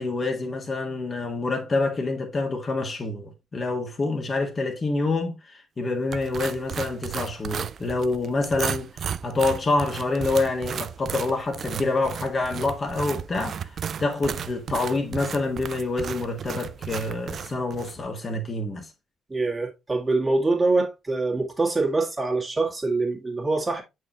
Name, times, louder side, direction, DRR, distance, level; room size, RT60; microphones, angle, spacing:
voice 1, 0.0-8.9 9.2-13.7 14.0-18.9, left 3 dB, 35° left, 1.8 m, -27 dB
sound 1, 6.1-18.0, right 8 dB, 50° right, 0.4 m, -34 dB
voice 2, 19.3-23.8, right 3 dB, 25° right, 2.4 m, -24 dB
8.3 x 4.8 x 3.0 m
figure-of-eight pair, 40°, 0 cm